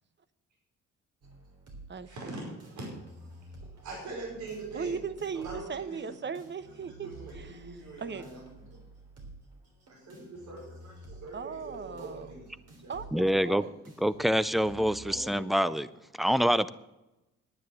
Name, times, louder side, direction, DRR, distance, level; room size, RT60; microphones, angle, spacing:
sound 1, 1.2-15.2, right 2 dB, 55° right, 3.7 m, -51 dB
voice 1, 2.0-2.9 3.1-3.3 3.7-5.0 5.3-6.1 7.0-8.4 9.9-13.6 14.5-15.8, right 2 dB, 75° right, -2 dB, 4.9 m, -43 dB
voice 2, 4.7-7.1 7.3-7.6 8.0-8.3 11.3-12.3 12.9-13.1 13.4-13.7, right 6 dB, 35° right, 13 dB, 1.0 m, -37 dB
voice 3, 13.1-13.7 14.0-15.9 16.2-16.7, equal, ahead, 17 dB, 0.5 m, -26 dB
10.0 x 9.6 x 7.7 m, 0.95 s
cardioid pair, 90°, 30 cm